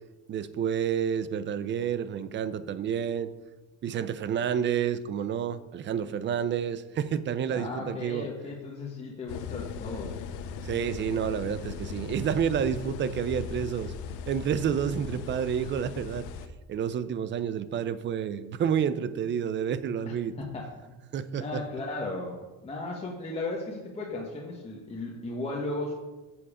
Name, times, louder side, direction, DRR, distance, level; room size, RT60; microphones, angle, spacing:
voice 1, 0.3-3.3 3.8-8.3 10.6-13.9 14.3-16.3 16.7-20.4 21.1-21.6, right 8 dB, 40° right, 14 dB, 0.6 m, -29 dB
voice 2, 7.5-10.2 20.0-21.1 21.4-25.9, left 2 dB, 20° left, -3 dB, 1.3 m, -36 dB
sound 1, 9.3-16.5, left 7 dB, 80° left, 0.8 m, -38 dB
7.1 x 7.0 x 4.9 m, 1.1 s
cardioid pair, 115°, 30 cm